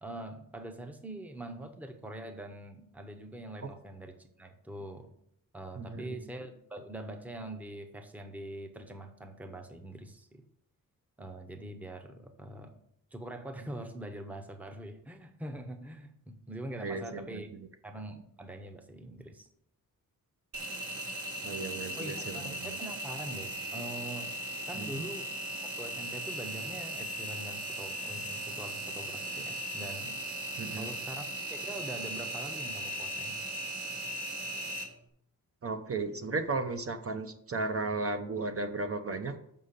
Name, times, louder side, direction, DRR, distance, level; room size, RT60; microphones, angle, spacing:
voice 1, 0.0-5.1 5.5-10.5 11.2-12.7 13.1-17.5 17.8-19.5 22.0-24.4 24.7-25.3 25.6-30.2 30.8-33.5, right 1 dB, 5° right, 6 dB, 0.7 m, -43 dB
voice 2, 5.8-6.1 16.8-17.4 21.4-22.5 24.8-25.0 30.6-30.9 35.6-39.3, right 3 dB, 40° right, 7 dB, 0.7 m, -35 dB
Engine, 20.5-34.8, right 1 dB, 65° right, 1.8 m, -38 dB
6.5 x 5.6 x 6.6 m, 0.72 s
wide cardioid pair, 150°, 34 cm